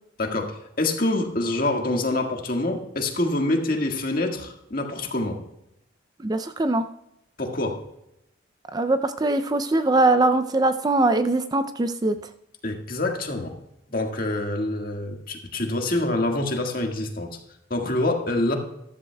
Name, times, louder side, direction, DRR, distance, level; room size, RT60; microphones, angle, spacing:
voice 1, 0.2-0.5 0.8-5.4 7.4-7.8 12.6-13.5 13.9-17.4 17.7-18.6, left 2 dB, 45° left, 2 dB, 1.7 m, -26 dB
voice 2, 6.2-6.9 8.7-12.2, right 2 dB, 20° right, 10 dB, 0.4 m, -22 dB
14.0 x 13.5 x 2.3 m, 0.83 s
head